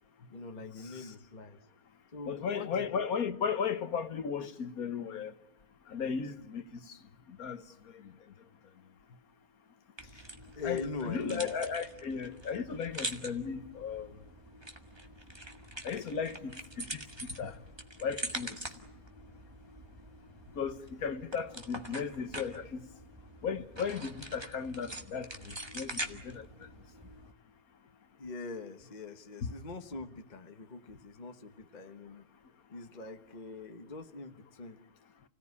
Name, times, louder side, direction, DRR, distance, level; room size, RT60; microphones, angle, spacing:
voice 1, 0.3-1.6 2.1-2.9 10.0-10.3 10.5-11.5 28.2-32.3 32.7-34.8, left 3 dB, 30° left, 1.3 m, -43 dB
voice 2, 2.3-5.3 5.9-6.6 7.4-7.6 10.6-14.1 15.8-17.6 18.0-18.6 20.6-22.8 23.4-26.5 29.4-29.5, left 6 dB, 90° left, 1.8 m, -35 dB
sound 1, 10.0-27.3, right 1 dB, 20° right, 1.8 m, -44 dB
30.0 x 17.5 x 9.7 m
omnidirectional pair, 1.5 m